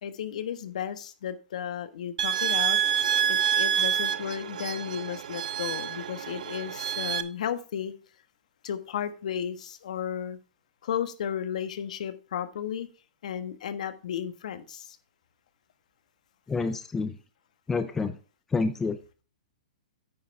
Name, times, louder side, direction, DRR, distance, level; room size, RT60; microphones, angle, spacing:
voice 1, 0.0-2.8 3.3-7.9 8.6-10.4 10.8-12.9 13.2-15.0, left 9 dB, 60° left, 11 dB, 1.5 m, -34 dB
sound 1, 2.2-7.2, right 9 dB, 70° right, 1.0 m, -27 dB
voice 2, 16.5-17.1 17.7-18.1 18.5-19.0, left 4 dB, 10° left, 9 dB, 0.6 m, -27 dB
9.5 x 6.7 x 4.7 m, 0.34 s
hypercardioid pair, 160°, 4 cm